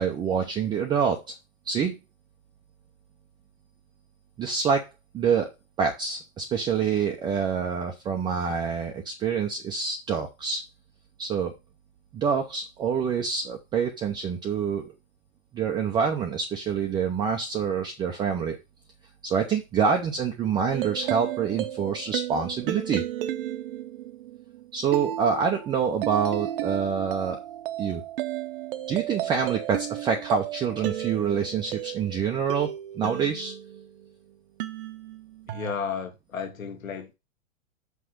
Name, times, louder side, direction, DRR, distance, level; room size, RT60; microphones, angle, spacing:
voice 1, 0.0-1.3 1.7-2.0 4.4-4.8 5.1-5.5 5.8-10.6 11.2-11.5 12.1-14.9 15.5-18.6 19.2-23.1 24.7-27.4 27.8-28.0 28.9-33.5, right 6 dB, 10° right, 0.5 m, -26 dB
sound 1, 20.7-34.1 34.6-35.8, right 13 dB, 45° right, 0.8 m, -34 dB
voice 2, 35.5-37.1, left 6 dB, 80° left, 1.7 m, -33 dB
5.9 x 4.9 x 6.3 m
hypercardioid pair, 135°, 41 cm